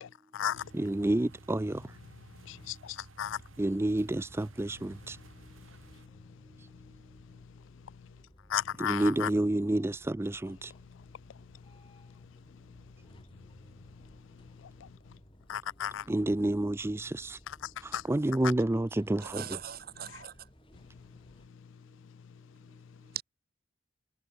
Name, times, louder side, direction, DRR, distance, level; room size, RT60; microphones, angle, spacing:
voice 1, 0.0-0.6 2.5-3.4 8.5-9.3 14.8-14.9 15.5-16.0 17.9-18.0, left 10 dB, 70° left, 0.4 m, -34 dB
sound 1, 0.5-6.1, right 2 dB, 90° right, 2.2 m, -54 dB
voice 2, 0.7-2.0 3.6-5.2 6.6-6.7 8.8-10.7 16.1-17.4 17.8-19.6, right 1 dB, 15° right, 0.4 m, -29 dB
sound 2, 3.1-21.5, equal, 25° left, 4.1 m, -58 dB
voice 3, 19.2-20.5 23.1-23.2, right 10 dB, 50° right, 1.4 m, -40 dB
head